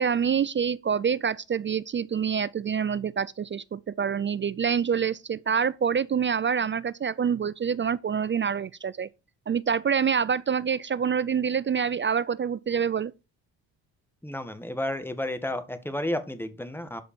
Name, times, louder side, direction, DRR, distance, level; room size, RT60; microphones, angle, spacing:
voice 1, 0.0-9.1 9.5-13.1, right 7 dB, 25° right, 0.3 m, -26 dB
voice 2, 14.2-17.0, left 1 dB, 5° left, 1.8 m, -32 dB
12.0 x 5.1 x 4.4 m
hypercardioid pair, 50°, 48 cm